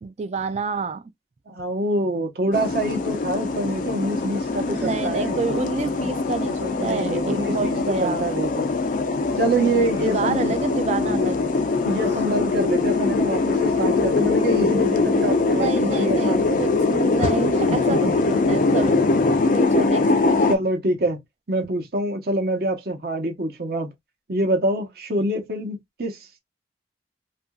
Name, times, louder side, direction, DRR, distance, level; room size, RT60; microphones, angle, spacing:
voice 1, 0.0-1.1 4.7-8.3 9.6-11.5 15.4-19.0 19.5-20.7, right 4 dB, 35° right, 0.3 m, -29 dB
voice 2, 1.5-5.4 6.0-6.1 6.8-7.6 7.9-8.7 9.4-10.6 11.9-16.6 17.7-18.0 19.5-19.6 20.5-21.2 21.5-23.9 24.3-26.4, right 1 dB, 55° right, 0.8 m, -26 dB
sound 1, 2.5-20.6, left 3 dB, 45° left, 0.4 m, -22 dB
2.8 x 2.5 x 2.3 m
head